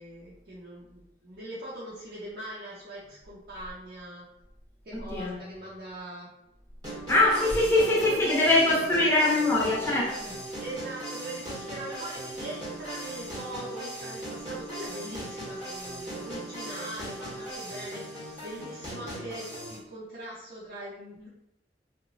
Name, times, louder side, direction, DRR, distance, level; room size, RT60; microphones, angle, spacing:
voice 1, 0.0-4.3 4.8-6.3 7.2-8.7 9.2-9.6 10.6-21.3, right 1 dB, 60° right, -7 dB, 0.6 m, -41 dB
voice 2, 4.9-5.4 7.1-10.3, left 2 dB, 15° left, -4 dB, 0.6 m, -23 dB
sound 1, 6.8-19.8, right 1 dB, 20° right, 0.8 m, -38 dB
2.8 x 2.0 x 2.6 m, 0.86 s
head